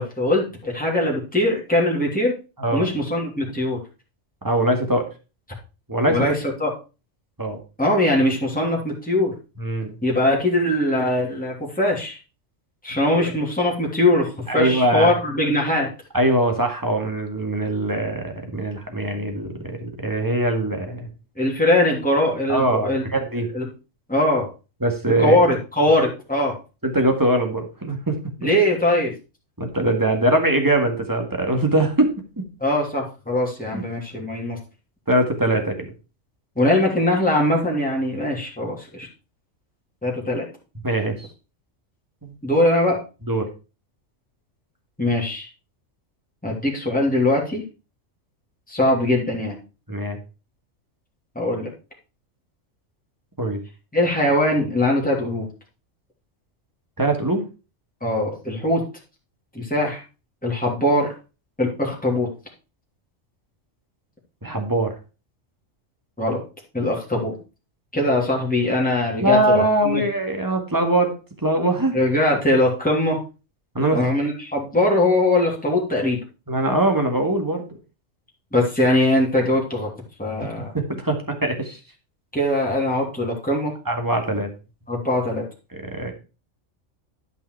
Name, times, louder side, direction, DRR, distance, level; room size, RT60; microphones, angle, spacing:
voice 1, 0.0-2.3 2.7-3.8 6.1-6.7 7.8-9.3 10.0-12.2 12.8-15.9 21.4-23.0 23.5-23.7 24.1-24.5 25.2-26.5 28.4-29.1 32.6-34.6 36.6-39.1 40.0-40.5 42.4-43.0 45.0-45.5 46.4-47.6 48.7-49.6 51.3-51.7 53.9-55.5 58.0-58.8 59.5-60.0 60.4-61.1 61.6-62.3 66.2-66.4 66.7-67.3 67.9-70.0 71.9-73.2 73.9-76.2 78.5-79.9 80.2-80.7 82.3-83.7 84.9-85.4, left 1 dB, 5° left, -2 dB, 2.9 m, -21 dB
voice 2, 4.4-5.1 5.9-6.3 7.4-7.6 9.6-10.0 13.1-13.3 14.5-15.1 16.1-21.1 22.5-23.5 24.8-25.4 26.8-28.2 29.6-32.4 33.7-33.8 35.1-35.9 40.8-41.3 42.2-42.4 43.3-43.5 49.9-50.2 53.4-53.6 57.0-57.4 64.4-64.9 69.2-71.1 71.4-72.0 73.7-74.1 76.5-77.7 80.4-80.5 80.7-81.8 83.9-84.5 85.7-86.1, right 1 dB, 15° right, 4 dB, 1.9 m, -22 dB
12.0 x 5.5 x 4.7 m, 0.32 s
omnidirectional pair, 1.3 m